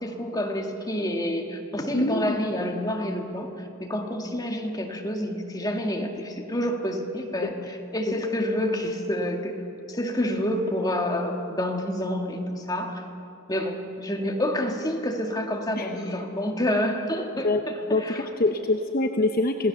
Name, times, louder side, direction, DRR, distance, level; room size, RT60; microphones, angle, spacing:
voice 1, 0.0-9.5 9.9-13.0 13.5-18.3, left 1 dB, 20° left, 2 dB, 1.9 m, -28 dB
voice 2, 1.9-2.4 7.4-7.5 8.1-8.2 15.8-15.9 17.4-17.6 17.9-19.7, left 2 dB, 45° left, 5 dB, 0.9 m, -25 dB
26.5 x 18.0 x 7.0 m, 2.9 s
head